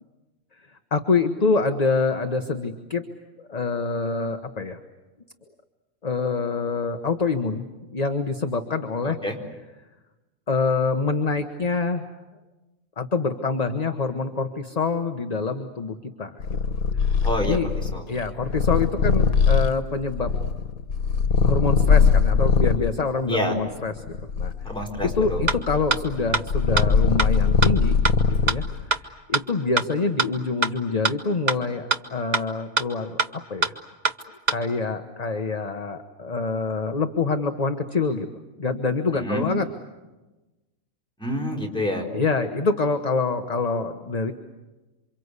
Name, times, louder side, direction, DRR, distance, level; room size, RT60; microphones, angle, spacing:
voice 1, 0.9-3.0 3.4-4.8 6.0-7.6 7.9-9.2 10.5-12.0 13.0-16.6 17.0-17.1 17.4-17.7 18.1-20.3 21.4-24.5 25.0-28.0 28.3-28.6 29.0-33.7 34.5-38.3 38.6-39.7 42.1-44.3, left 4 dB, 30° left, 6 dB, 1.2 m, -26 dB
voice 2, 9.0-9.4 17.2-17.6 17.9-18.0 23.3-23.6 24.6-25.4 39.1-39.5 41.2-42.1, equal, 5° left, 1 dB, 4.4 m, -27 dB
Purr, 16.4-22.9 23.6-28.8, left 5 dB, 85° left, 1.7 m, -21 dB
sound 1, 25.5-25.6 25.9-26.0 26.3-26.4 26.8-26.9 27.2-27.3 27.6-27.7 28.0-28.1 28.5-28.6 28.9-29.0 29.3-29.4 29.8-29.9 30.2-30.3 30.6-30.7 31.1-31.2 31.5-31.6 31.9-32.0 32.3-32.4 32.8-32.9 33.2-33.3 33.6-33.7 34.0-34.1 34.5-34.6, right 3 dB, 35° right, 1.0 m, -21 dB
28.0 x 25.5 x 8.2 m, 1.1 s
omnidirectional pair, 1.5 m